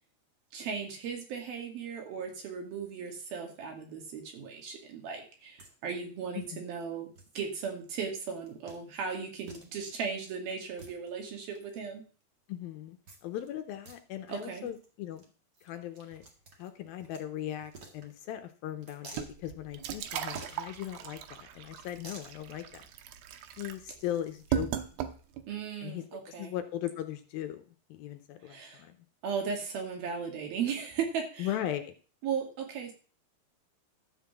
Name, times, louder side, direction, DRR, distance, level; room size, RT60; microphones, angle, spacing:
voice 1, 0.5-7.1 7.4-12.0 14.3-14.7 25.5-26.5 28.5-28.8 29.2-31.5 32.2-32.9, right 6 dB, 70° right, 2 dB, 4.0 m, -36 dB
sound 1, 5.6-5.7 6.0-6.1 6.4-6.5 7.1-7.4 7.9-8.1 8.3-8.8 9.1-9.2 9.5-9.9 10.5-11.8 13.1-13.5 13.7-14.0 14.3-14.4 14.7-14.9 15.1-15.2 15.5-17.2 17.6-18.4 18.8-19.3 20.3-20.8 21.7-22.3, right 3 dB, 35° right, 2.0 m, -50 dB
voice 2, 6.4-6.7 12.5-15.2 15.6-16.2 16.6-22.8 23.6-24.8 25.8-26.0 26.4-27.6 27.9-29.0 31.4-31.9, left 12 dB, 75° left, 8 dB, 2.4 m, -38 dB
sound 2, 19.1-25.5, right 10 dB, 90° right, 3.0 m, -37 dB
12.5 x 5.7 x 7.2 m, 0.38 s
omnidirectional pair, 4.6 m